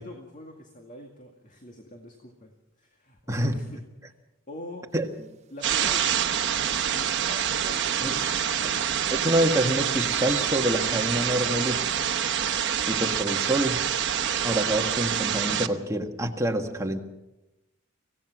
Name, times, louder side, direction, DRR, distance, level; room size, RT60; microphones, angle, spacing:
voice 1, 0.0-2.5 2.8-3.8 4.5-4.9 5.5-8.1 8.5-9.0 11.2-11.6 12.3-12.6, left 1 dB, 40° left, 2 dB, 2.2 m, -44 dB
sound 1, 5.6-15.7, right 9 dB, 60° right, 1.1 m, -26 dB
sound 2, 5.8-7.6 8.2-8.3 8.9-11.7 12.0-12.1, right 8 dB, 35° right, 1.1 m, -41 dB
voice 2, 8.0-8.3 9.1-11.8 12.9-13.8 14.4-17.0, right 1 dB, 15° right, 3 dB, 1.7 m, -26 dB
25.5 x 17.0 x 6.1 m, 0.96 s
head